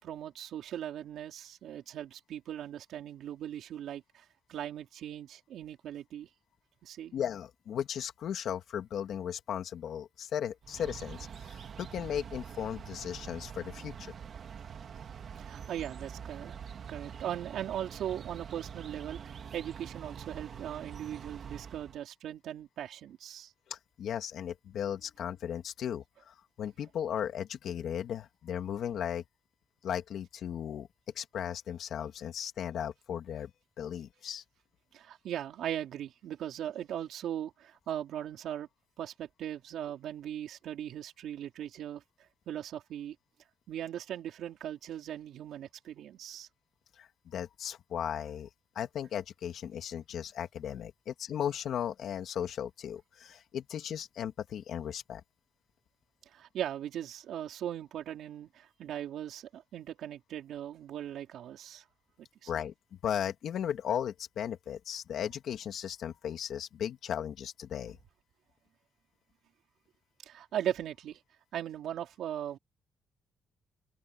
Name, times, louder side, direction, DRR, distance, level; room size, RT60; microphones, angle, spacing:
voice 1, 0.0-6.3 6.8-7.2 15.4-16.6 16.9-23.5 34.9-38.7 39.0-42.0 42.5-43.1 43.7-46.5 56.3-61.8 62.2-62.5 70.2-71.2 71.5-72.6, right 10 dB, 75° right, 4.3 m, -39 dB
voice 2, 7.1-14.1 23.7-29.2 29.8-30.9 31.2-33.5 33.8-34.4 47.0-48.5 48.8-55.2 62.5-62.7 63.0-68.0, left 9 dB, 65° left, 2.2 m, -36 dB
sound 1, 10.6-22.0, right 7 dB, 45° right, 2.5 m, -45 dB
cardioid pair, 150°, 0 cm